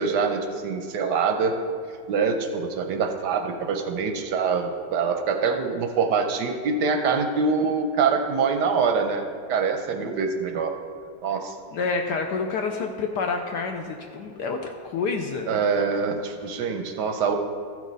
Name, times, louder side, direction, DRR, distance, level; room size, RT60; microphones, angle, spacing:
voice 1, 0.0-1.6 2.1-10.7 11.2-11.5 15.5-17.4, right 5 dB, 70° right, 5 dB, 1.0 m, -24 dB
voice 2, 11.7-15.6, left 4 dB, 75° left, 4 dB, 0.9 m, -28 dB
15.0 x 6.2 x 4.0 m, 2.1 s
omnidirectional pair, 2.4 m